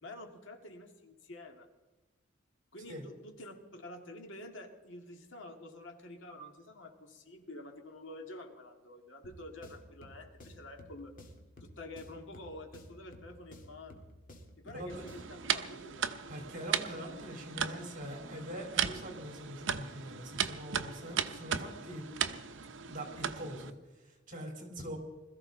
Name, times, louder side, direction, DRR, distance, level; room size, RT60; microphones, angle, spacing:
voice 1, 0.0-1.7 2.7-11.2 11.6-14.0 14.6-16.1, left 1 dB, 70° left, 4 dB, 2.2 m, -48 dB
sound 1, 9.2-15.5, left 1 dB, 45° left, 2.1 m, -54 dB
voice 2, 14.6-15.0 16.3-22.0 22.8-25.0, equal, 40° right, 2 dB, 3.5 m, -43 dB
sound 2, 14.9-23.7, right 8 dB, 65° right, 0.8 m, -37 dB
21.5 x 14.0 x 3.9 m, 1.2 s
head